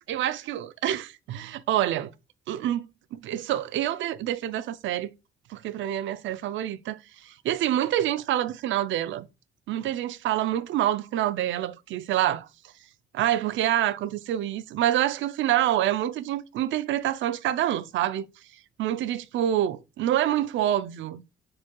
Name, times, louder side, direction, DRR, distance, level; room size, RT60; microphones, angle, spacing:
voice 1, 0.1-2.1 2.5-2.9 3.1-5.1 5.5-7.0 7.2-9.3 9.7-12.5 13.1-18.3 18.8-21.2, right 12 dB, 75° right, 0.5 m, -27 dB
4.6 x 4.4 x 2.2 m
cardioid pair, 90°, 20 cm